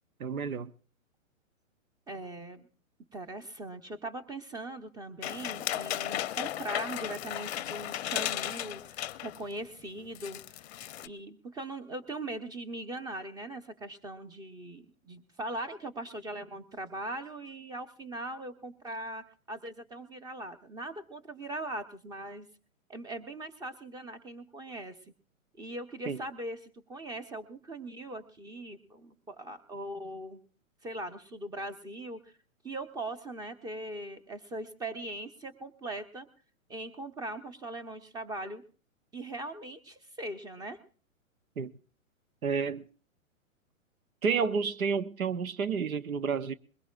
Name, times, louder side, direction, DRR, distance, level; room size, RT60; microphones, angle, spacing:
voice 1, 0.2-0.7 26.1-26.2 41.6-41.7 42.4-42.9 44.2-46.5, right 5 dB, 85° right, 0.8 m, -30 dB
voice 2, 2.1-2.7 3.1-10.6 11.0-22.5 22.9-25.0 25.6-30.4 30.8-32.3 32.6-36.3 36.7-38.6 39.1-40.8, right 1 dB, 10° right, 0.9 m, -40 dB
sound 1, 5.2-9.5 9.8-9.9 10.1-11.1, left 12 dB, 50° left, 0.6 m, -35 dB
21.5 x 21.5 x 2.5 m
hypercardioid pair, 120°, 41 cm